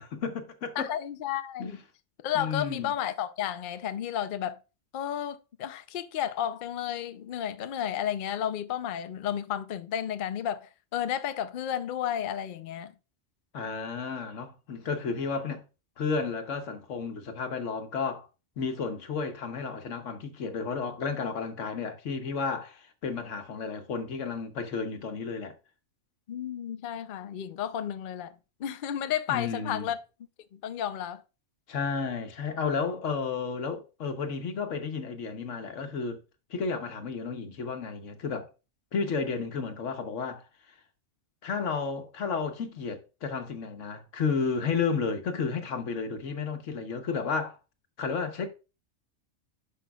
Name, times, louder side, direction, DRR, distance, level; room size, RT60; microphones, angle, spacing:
voice 1, 0.0-0.9 1.6-1.8 2.3-2.9 13.5-15.6 16.0-18.3 18.6-25.6 29.3-29.9 31.7-36.2 36.5-38.5 38.9-40.4 41.4-47.6 48.0-48.5, left 5 dB, 85° left, 1.3 m, -32 dB
voice 2, 0.8-1.8 2.2-4.6 4.9-12.9 26.3-28.3 28.6-30.0 30.6-31.2, left 10 dB, 55° left, 0.6 m, -32 dB
10.0 x 6.1 x 2.3 m
omnidirectional pair, 1.2 m